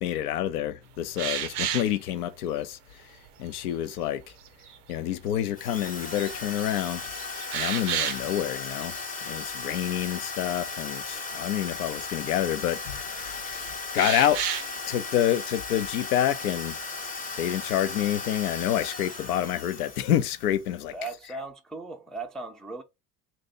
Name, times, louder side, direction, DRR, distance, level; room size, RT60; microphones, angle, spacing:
voice 1, 0.0-2.8 3.4-4.2 4.9-7.0 7.5-8.9 9.3-14.4 14.9-16.8 17.4-20.9, left 11 dB, 85° left, 0.5 m, -28 dB
sound 1, 1.2-2.0 2.6-2.7 3.3-3.7 4.3-4.8 5.3-5.4 5.9-6.3 6.6-8.4 8.8-9.0 9.3-9.5 14.0-14.8 15.8-16.3, right 10 dB, 90° right, 0.5 m, -32 dB
Drill, 5.5-20.7, left 4 dB, 20° left, 0.7 m, -36 dB
voice 2, 20.9-22.8, right 3 dB, ahead, 0.3 m, -37 dB
2.7 x 2.6 x 3.8 m
hypercardioid pair, 70°, 44 cm